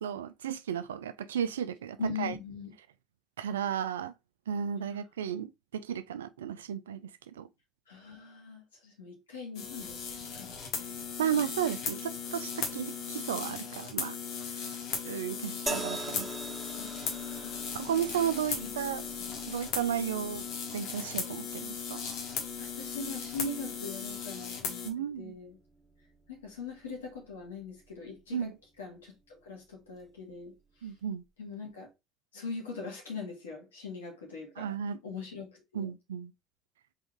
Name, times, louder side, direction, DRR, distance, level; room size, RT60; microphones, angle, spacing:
voice 1, 0.0-2.3 3.4-4.1 4.5-7.0 7.4-7.5 11.2-14.1 14.4-14.8 15.0-16.3 17.7-19.0 19.5-20.5 20.7-22.0 24.8-25.3 28.3-28.5 30.8-31.2 34.6-35.0 35.7-36.3, right 9 dB, 85° right, 0.4 m, -34 dB
voice 2, 2.0-2.7 7.9-11.1 16.7-17.7 18.6-18.7 22.6-25.6 26.3-30.5 30.8-30.9 31.4-31.9 32.3-34.7 35.0-35.9, left 4 dB, 85° left, 1.9 m, -42 dB
sound 1, 9.5-24.9, left 6 dB, 65° left, 1.2 m, -37 dB
sound 2, 15.7-29.0 29.9-30.1, right 2 dB, 20° right, 1.3 m, -45 dB
3.8 x 3.5 x 3.5 m
hypercardioid pair, 65°, 0 cm